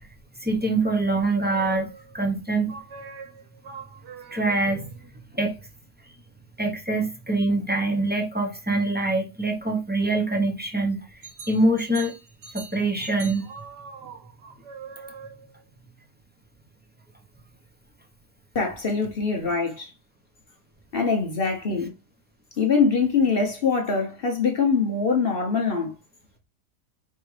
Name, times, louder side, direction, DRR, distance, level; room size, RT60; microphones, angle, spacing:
voice 1, 0.4-2.8 4.3-5.5 6.6-11.2 11.5-12.1 12.5-13.4, right 2 dB, 15° right, 0.4 m, -24 dB
sound 1, 1.4-2.2 2.7-5.1 11.2-15.6, right 5 dB, 80° right, 1.5 m, -42 dB
voice 2, 18.5-19.9 20.9-21.9 22.6-25.9, left 5 dB, 50° left, 0.7 m, -23 dB
4.8 x 3.2 x 3.2 m
omnidirectional pair, 1.8 m